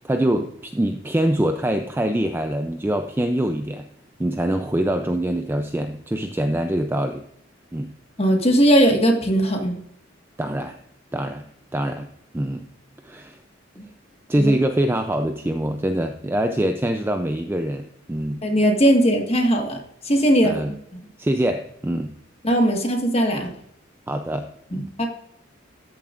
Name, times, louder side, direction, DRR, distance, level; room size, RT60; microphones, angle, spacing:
voice 1, 0.0-3.8 4.2-7.2 7.7-7.9 10.4-10.8 11.1-11.4 11.7-12.1 12.3-12.7 13.0-13.4 14.3-18.4 20.4-20.7 21.2-22.1 24.1-24.9, right 1 dB, 10° right, 7 dB, 0.4 m, -24 dB
voice 2, 8.2-9.8 13.8-13.9 14.4-14.5 18.4-19.8 20.0-21.0 22.4-23.5 24.7-25.1, right 1 dB, 30° left, 3 dB, 1.5 m, -19 dB
13.5 x 7.1 x 2.5 m, 0.77 s
head